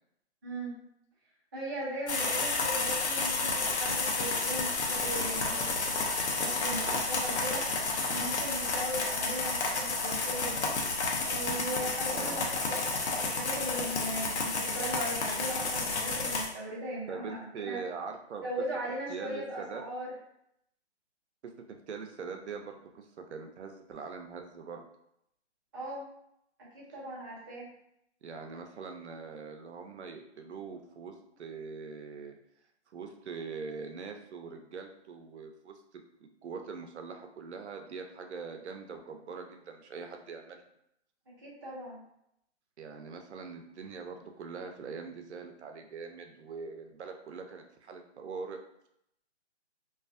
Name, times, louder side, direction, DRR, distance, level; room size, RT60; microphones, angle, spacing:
voice 1, 0.4-0.7 1.5-6.0 6.3-10.7 11.2-17.8 18.4-20.1 25.7-26.1 26.7-27.7 41.4-42.0, right 1 dB, 20° right, -7 dB, 0.4 m, -38 dB
sound 1, 2.1-16.5, left 3 dB, 75° left, 0.7 m, -31 dB
voice 2, 12.1-12.4 17.1-18.4 19.1-19.8 21.4-24.9 28.2-32.4 32.9-35.8 36.4-40.6 42.8-48.6, right 5 dB, 75° right, 4 dB, 0.5 m, -42 dB
2.4 x 2.3 x 2.4 m, 0.77 s
hypercardioid pair, 150°, 35 cm